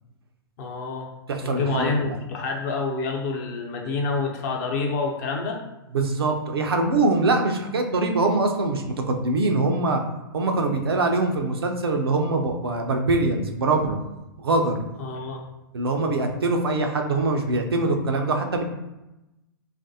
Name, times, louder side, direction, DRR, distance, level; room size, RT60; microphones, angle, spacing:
voice 1, 0.6-1.1 1.4-5.6 15.0-15.4, left 3 dB, 50° left, 1 dB, 0.7 m, -28 dB
voice 2, 1.3-2.0 5.9-10.0 10.3-14.0 14.4-14.8 15.7-18.6, right 2 dB, 80° right, 4 dB, 0.5 m, -23 dB
3.2 x 2.5 x 2.7 m, 0.97 s
hypercardioid pair, 115°, 13 cm